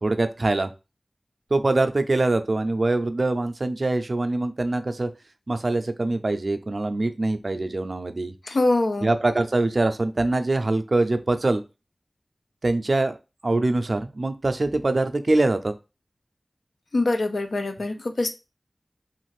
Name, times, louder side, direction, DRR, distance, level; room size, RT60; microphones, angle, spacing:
voice 1, 0.0-0.7 1.5-5.1 5.5-8.3 9.0-11.6 12.6-13.2 13.4-15.7, right 2 dB, 55° right, 0.4 m, -23 dB
voice 2, 8.5-9.1 16.9-18.3, left 2 dB, 85° left, 0.4 m, -23 dB
3.1 x 2.5 x 3.2 m
wide cardioid pair, 60°, 0 cm